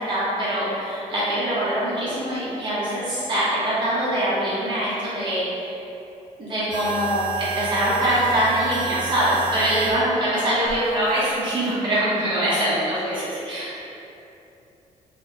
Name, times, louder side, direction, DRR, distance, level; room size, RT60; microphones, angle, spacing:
voice 1, 0.0-5.7 6.4-13.8, right 1 dB, 35° right, -10 dB, 1.1 m, -23 dB
sound 1, 6.7-10.0 10.7-11.7, right 7 dB, 80° right, 0.5 m, -30 dB
3.2 x 2.3 x 3.4 m, 2.8 s
cardioid pair, 145°, 13 cm